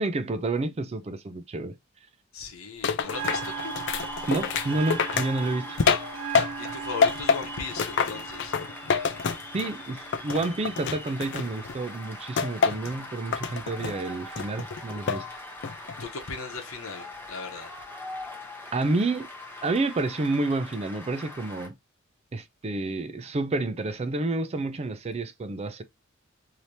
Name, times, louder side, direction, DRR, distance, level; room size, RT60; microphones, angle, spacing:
voice 1, 0.0-1.8 4.3-5.8 9.5-15.3 18.7-19.3 19.6-21.7 22.3-25.8, right 2 dB, 30° right, 0.4 m, -29 dB
voice 2, 2.3-3.7 6.6-8.5 16.0-17.7, left 5 dB, 80° left, 0.9 m, -37 dB
sound 1, 2.8-6.7 7.0-9.8 10.1-11.8 12.4-12.9 13.3-14.0 14.4-15.3 15.6-16.0, left 5 dB, 60° left, 0.4 m, -27 dB
Bell, 3.0-11.0, right 9 dB, 70° right, 0.6 m, -40 dB
Cheering / Applause, 3.1-21.7, left 2 dB, 10° left, 0.8 m, -41 dB
3.3 x 2.8 x 2.7 m
head